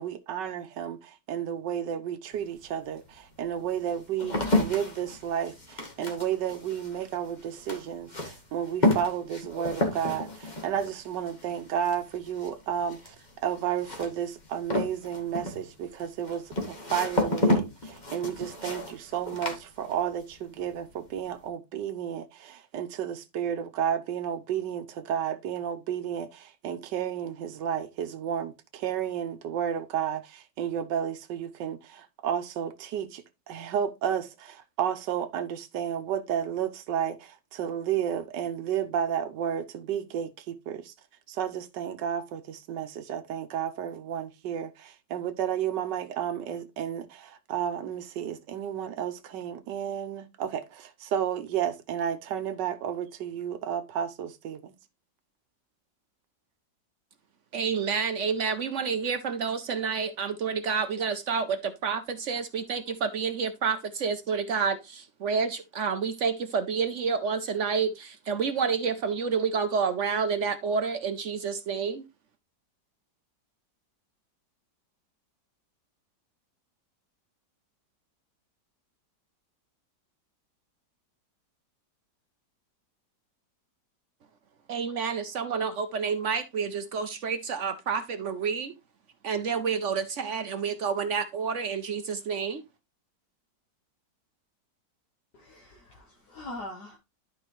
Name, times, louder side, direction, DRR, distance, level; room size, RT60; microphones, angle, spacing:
voice 1, 0.0-13.2 13.4-40.9 41.3-54.7, right 9 dB, 90° right, 1.4 m, -32 dB
sound 1, 2.4-2.5 3.1-20.3 20.6-21.2, left 1 dB, 25° left, 1.6 m, -31 dB
voice 2, 57.5-72.0 84.7-88.7 89.2-92.6, right 6 dB, 65° right, 0.7 m, -29 dB
voice 3, 95.3-97.0, left 1 dB, 70° left, 2.0 m, -42 dB
11.5 x 5.0 x 3.1 m
omnidirectional pair, 1.9 m